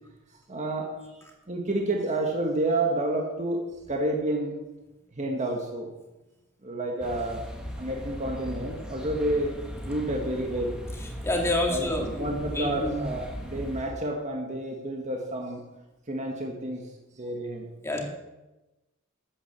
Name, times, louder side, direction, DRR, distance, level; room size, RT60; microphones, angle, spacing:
voice 1, 0.5-1.1 1.5-3.6 3.9-4.5 5.1-5.9 6.6-7.4 7.8-9.5 9.8-10.8 11.7-11.9 12.2-15.6 16.1-16.8 17.2-17.7, right 1 dB, 35° right, 1 dB, 1.7 m, -29 dB
sound 1, 7.0-13.8, equal, 5° right, 1.8 m, -38 dB
voice 2, 11.0-13.1 17.8-18.0, left 1 dB, 10° left, 1 dB, 2.3 m, -28 dB
13.0 x 8.5 x 7.1 m, 1.0 s
head